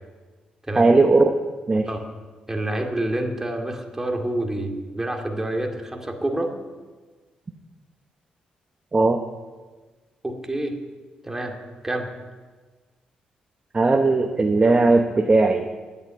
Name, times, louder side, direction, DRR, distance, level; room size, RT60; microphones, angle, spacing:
voice 1, 0.8-1.3 1.7-1.9 8.9-9.2 13.7-15.6, right 3 dB, 30° right, 5 dB, 1.0 m, -18 dB
voice 2, 2.5-6.5 10.2-10.8 11.2-11.6 11.8-12.1, right 1 dB, 15° right, 2 dB, 2.3 m, -27 dB
9.9 x 8.7 x 9.9 m, 1.3 s
supercardioid pair, 65°, 3 cm